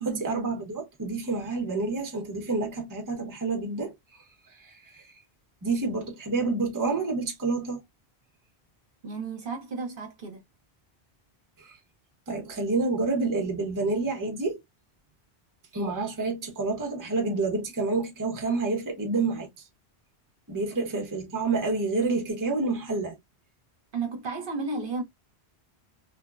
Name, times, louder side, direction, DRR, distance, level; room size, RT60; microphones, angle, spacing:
voice 1, 0.1-3.9 4.9-5.0 5.6-7.8 11.6-11.7 12.3-14.6 15.7-19.5 20.5-23.2, right 3 dB, 20° right, 0.7 m, -28 dB
voice 2, 9.0-10.4 23.9-25.0, right 4 dB, 60° right, 0.9 m, -33 dB
3.2 x 2.1 x 2.3 m
omnidirectional pair, 1.1 m